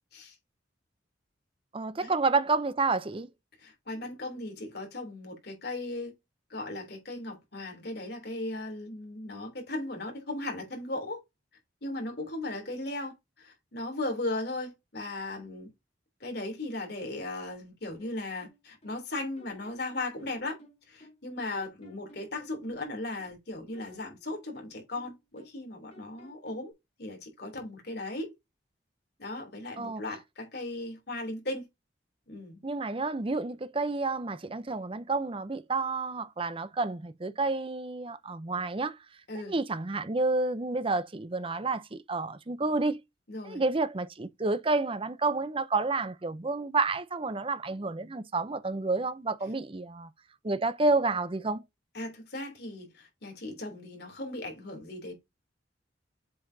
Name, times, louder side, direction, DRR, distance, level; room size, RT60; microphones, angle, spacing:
voice 1, 1.7-3.3 29.8-30.0 32.6-39.0 39.3-43.0 43.4-50.1 50.4-51.6, right 3 dB, 30° right, 0.6 m, -30 dB
voice 2, 3.6-6.1 6.5-11.2 11.8-15.7 16.2-20.6 20.9-26.7 27.0-28.3 29.2-31.7 32.3-32.6 39.3-39.6 43.3-43.6 51.9-55.1, left 2 dB, 60° left, 3.2 m, -37 dB
sound 1, 18.0-19.0 19.4-21.3 21.5-23.4 23.7-25.6 25.9-26.7, left 1 dB, 35° left, 3.4 m, -56 dB
7.8 x 5.6 x 2.7 m
head